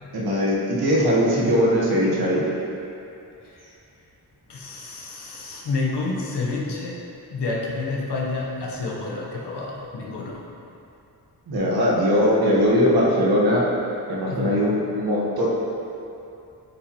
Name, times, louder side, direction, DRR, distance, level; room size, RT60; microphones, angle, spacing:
voice 1, 0.1-2.4 11.5-13.7 14.1-15.5, equal, 65° right, -5 dB, 1.5 m, -20 dB
voice 2, 4.5-7.0 7.3-10.5 14.3-14.6, left 3 dB, 85° left, -3 dB, 1.2 m, -29 dB
8.5 x 8.2 x 3.1 m, 2.7 s
wide cardioid pair, 160°, 39 cm